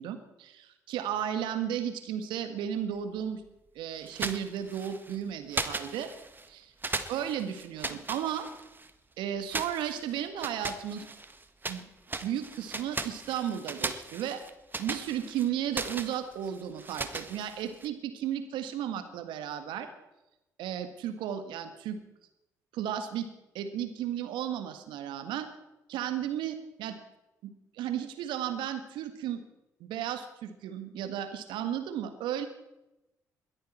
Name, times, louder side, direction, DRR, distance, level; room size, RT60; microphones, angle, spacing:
voice 1, 0.0-3.4 3.8-6.1 6.5-6.7 7.1-8.5 9.2-11.1 11.7-11.8 12.2-14.4 14.8-19.9 20.6-22.0 22.7-23.3 23.5-25.5 25.9-27.0 27.4-29.4 29.8-32.5, right 10 dB, 70° right, 9 dB, 1.8 m, -34 dB
sound 1, 4.1-5.2 5.5-6.5 6.8-8.9 9.5-11.8 12.1-17.9, right 3 dB, 25° right, 1.6 m, -38 dB
21.5 x 13.5 x 4.5 m, 0.93 s
hypercardioid pair, 45°, 8 cm